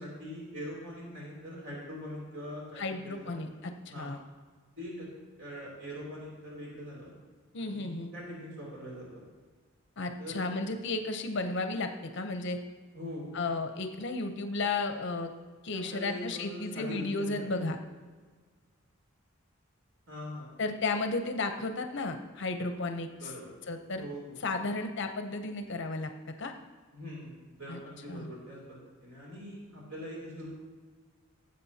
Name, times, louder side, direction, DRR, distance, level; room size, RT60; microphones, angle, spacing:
voice 1, 0.0-3.4 3.9-4.1 4.8-5.1 5.4-7.1 7.6-9.2 10.2-10.5 12.9-13.4 15.7-17.7 20.1-20.5 23.1-23.5 23.9-24.4 26.9-30.5, equal, 60° right, -4 dB, 2.9 m, -42 dB
voice 2, 2.8-4.2 7.5-8.1 10.0-12.6 13.3-15.3 15.6-17.8 20.6-23.3 23.7-24.1 24.4-26.1 26.4-26.5 27.7-27.8 28.1-28.3, left 3 dB, 55° left, 6 dB, 0.6 m, -33 dB
16.0 x 7.6 x 2.8 m, 1.5 s
head